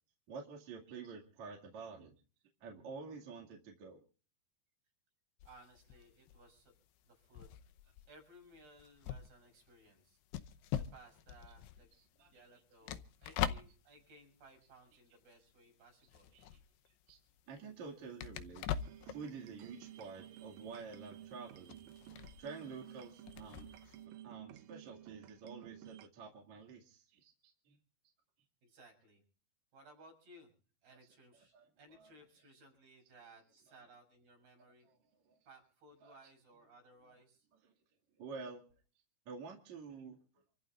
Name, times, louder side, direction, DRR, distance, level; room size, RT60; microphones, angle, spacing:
voice 1, 0.3-2.1 2.6-4.0 11.9-12.3 13.2-13.3 16.3-16.6 17.1-17.2 17.5-18.7 19.0-23.9 24.2-27.8 30.9-31.0 31.5-32.1 33.7-33.9 34.8-35.0 35.3-35.4 36.0-36.2 37.6-37.7 38.2-38.6 39.3-40.2, right 5 dB, 50° right, 0 dB, 3.3 m, -49 dB
sound 1, 5.4-15.6 15.9-24.0, left 10 dB, 90° left, 2.9 m, -44 dB
voice 2, 5.4-6.7 7.0-7.5 8.1-12.0 12.2-16.3 28.6-29.2 29.7-30.5 30.8-34.9 35.5-37.5, right 1 dB, 70° right, 1 dB, 8.5 m, -61 dB
sound 2, 18.8-26.1, right 12 dB, 85° right, 1.7 m, -53 dB
28.5 x 14.5 x 2.5 m, 0.40 s
omnidirectional pair, 4.6 m